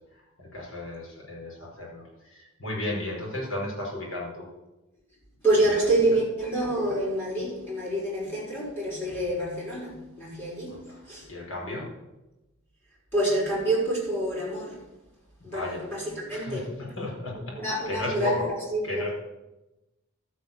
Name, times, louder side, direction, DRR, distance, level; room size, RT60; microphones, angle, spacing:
voice 1, 0.4-4.5 10.7-11.0 11.3-11.9 15.4-15.9 16.3-18.5 18.8-19.1, left 2 dB, 70° left, -3 dB, 5.2 m, -34 dB
voice 2, 5.4-10.8 11.1-11.2 13.1-14.8 15.4-16.7 17.5-19.1, right 1 dB, 10° left, -6 dB, 5.9 m, -27 dB
13.0 x 8.2 x 7.0 m, 1.0 s
head